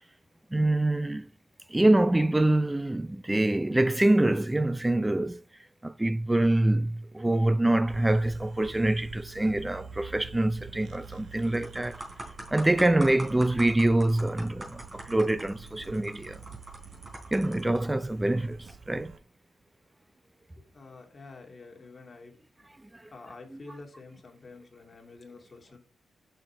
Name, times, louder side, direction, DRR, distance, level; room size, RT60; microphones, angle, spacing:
voice 1, 0.5-1.3 1.7-5.4 5.8-12.0 12.5-16.4 17.3-18.6 18.9-19.1, right 1 dB, 10° right, 0.4 m, -25 dB
sound 1, 7.9-19.2, right 6 dB, 65° right, 1.0 m, -47 dB
sound 2, 10.8-11.1 11.4-17.8 18.5-18.7, right 1 dB, 30° right, 3.7 m, -43 dB
voice 2, 20.6-22.3 23.1-25.8, left 3 dB, 35° left, 2.2 m, -48 dB
6.4 x 6.3 x 4.4 m
cardioid pair, 90°, 0 cm